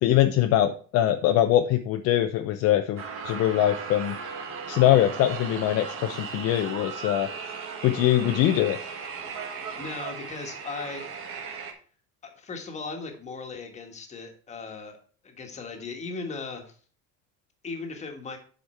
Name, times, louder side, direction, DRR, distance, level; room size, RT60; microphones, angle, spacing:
voice 1, 0.0-4.1 4.7-7.3 7.8-8.8, left 12 dB, 50° left, 6 dB, 0.6 m, -22 dB
sound 1, 3.0-11.7, right 5 dB, 40° right, 1.3 m, -37 dB
voice 2, 9.7-11.8 12.2-15.0 15.2-16.8 17.6-18.4, left 4 dB, 20° left, 3 dB, 1.4 m, -38 dB
8.0 x 5.1 x 4.2 m, 0.42 s
cardioid pair, 150°, 31 cm